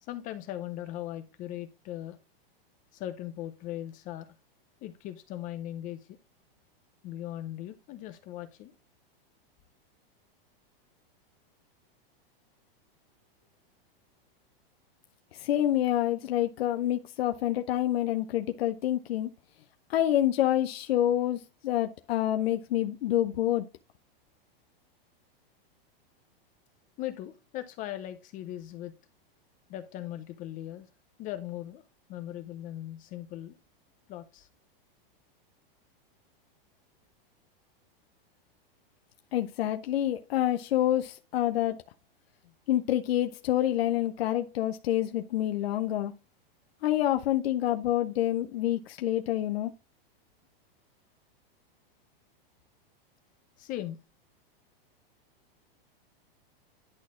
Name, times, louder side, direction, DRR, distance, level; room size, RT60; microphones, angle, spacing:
voice 1, 0.0-2.2 2.9-4.3 4.8-6.2 7.0-8.7 27.0-28.9 29.7-30.9 31.2-31.8 32.1-33.6 34.1-34.5 53.6-54.0, left 13 dB, 25° left, 0.6 m, -39 dB
voice 2, 15.3-19.3 19.9-23.7 39.3-41.8 42.7-46.1 46.8-49.7, left 12 dB, 85° left, 0.6 m, -27 dB
11.0 x 4.2 x 3.6 m
supercardioid pair, 150°, 30 cm